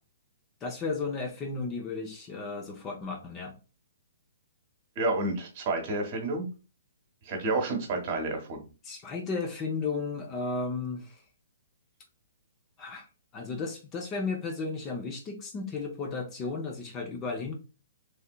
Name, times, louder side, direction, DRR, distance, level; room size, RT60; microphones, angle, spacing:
voice 1, 0.6-3.5 8.8-11.2 12.8-13.1 13.3-17.6, left 4 dB, 25° left, 4 dB, 0.6 m, -34 dB
voice 2, 5.0-6.5 7.2-8.6, right 2 dB, 40° right, 4 dB, 1.1 m, -30 dB
3.3 x 2.7 x 2.3 m, 0.31 s
figure-of-eight pair, 120°, 0 cm